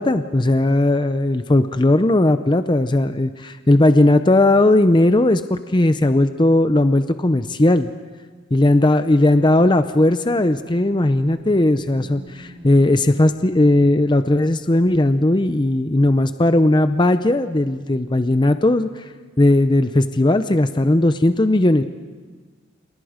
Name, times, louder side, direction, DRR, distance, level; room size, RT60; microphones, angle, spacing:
voice 1, 0.0-7.9 8.5-19.0 19.4-21.8, left 1 dB, 25° left, 10 dB, 0.6 m, -17 dB
sound 1, 10.4-15.2, equal, 35° right, 6.6 m, -43 dB
29.5 x 27.5 x 5.1 m, 1.5 s
head